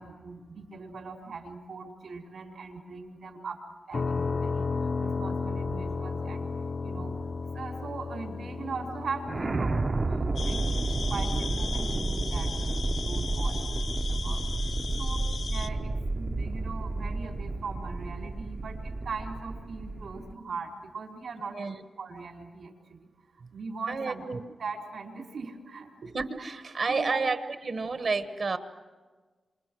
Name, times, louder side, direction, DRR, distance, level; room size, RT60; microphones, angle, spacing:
voice 1, 0.0-3.6 3.9-4.7 5.0-6.5 6.8-7.1 7.5-10.7 11.1-14.4 15.0-23.0 23.5-24.2 24.6-25.9 26.9-27.2, right 4 dB, 75° right, 1 dB, 4.3 m, -40 dB
sound 1, 3.9-17.6, left 4 dB, 45° left, 0.7 m, -36 dB
sound 2, 9.2-20.3, right 3 dB, 30° right, 0.7 m, -31 dB
sound 3, 10.4-15.7, left 5 dB, 80° left, 1.3 m, -38 dB
voice 2, 23.9-24.4 26.0-27.4 27.6-28.6, right 4 dB, 50° right, 8 dB, 1.3 m, -30 dB
28.5 x 27.0 x 6.3 m, 1.4 s
wide cardioid pair, 160°, 0 cm